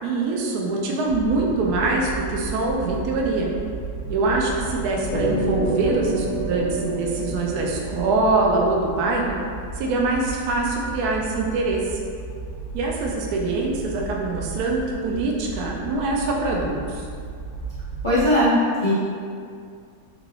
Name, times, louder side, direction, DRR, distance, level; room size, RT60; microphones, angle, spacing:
voice 1, 0.0-3.5 4.1-9.3 9.7-12.0 12.7-17.1, right 3 dB, 70° right, -1 dB, 1.0 m, -24 dB
sound 1, 1.0-18.3, right 4 dB, 85° left, 1.3 m, -34 dB
sound 2, 5.1-9.7, right 2 dB, 60° left, 1.2 m, -29 dB
voice 2, 18.0-18.9, left 1 dB, 40° left, -13 dB, 0.4 m, -19 dB
3.7 x 3.1 x 2.3 m, 2.3 s
omnidirectional pair, 1.8 m